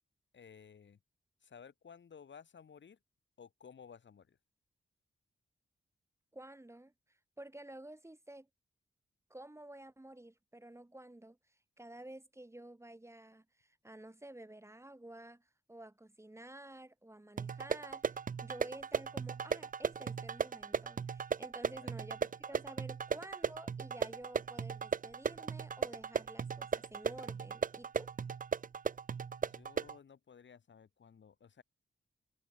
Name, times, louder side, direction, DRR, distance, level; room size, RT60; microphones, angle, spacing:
voice 1, 0.3-1.0 1.4-3.0 3.4-4.4 21.8-21.9 29.4-31.6, left 6 dB, 65° left, 1.6 m, -56 dB
voice 2, 6.3-6.9 7.4-8.5 9.3-11.4 11.8-28.1, right 1 dB, 15° right, 1.4 m, -51 dB
sound 1, 17.4-30.0, right 6 dB, 40° right, 0.6 m, -37 dB
cardioid pair, 80°, 21 cm